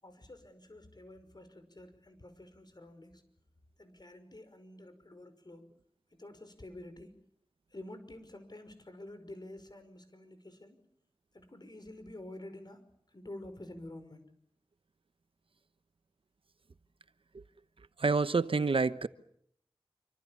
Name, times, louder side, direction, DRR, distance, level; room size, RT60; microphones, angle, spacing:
voice 1, 0.0-3.2 3.8-5.7 6.2-7.2 7.7-10.8 11.3-14.2, left 1 dB, 50° left, 5.5 m, -49 dB
voice 2, 18.0-19.1, right 4 dB, 85° right, 1.0 m, -27 dB
27.0 x 26.0 x 7.2 m
wide cardioid pair, 65°, 9 cm